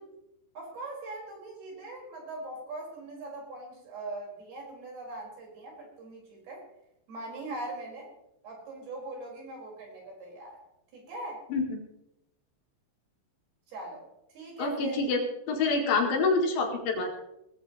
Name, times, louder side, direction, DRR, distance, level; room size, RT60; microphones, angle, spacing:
voice 1, 0.5-6.6 7.1-8.1 8.4-10.6 10.9-11.4 13.7-14.0 14.3-15.0, right 2 dB, 55° right, -2 dB, 6.2 m, -41 dB
voice 2, 14.6-15.2 15.5-17.1, left 3 dB, 65° left, 1 dB, 4.4 m, -26 dB
21.0 x 14.5 x 3.0 m, 0.84 s
omnidirectional pair, 5.6 m